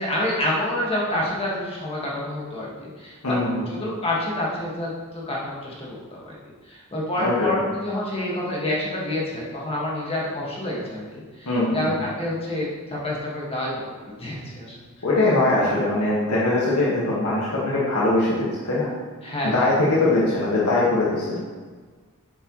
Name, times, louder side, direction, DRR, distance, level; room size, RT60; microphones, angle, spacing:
voice 1, 0.0-3.4 3.7-6.3 6.7-14.7 19.2-19.7, left 1 dB, 25° left, -5 dB, 1.7 m, -28 dB
voice 2, 3.2-3.7 7.2-7.3 11.4-11.8 15.0-18.9 19.4-21.4, left 2 dB, 90° left, -7 dB, 1.5 m, -21 dB
7.8 x 6.8 x 3.1 m, 1.4 s
head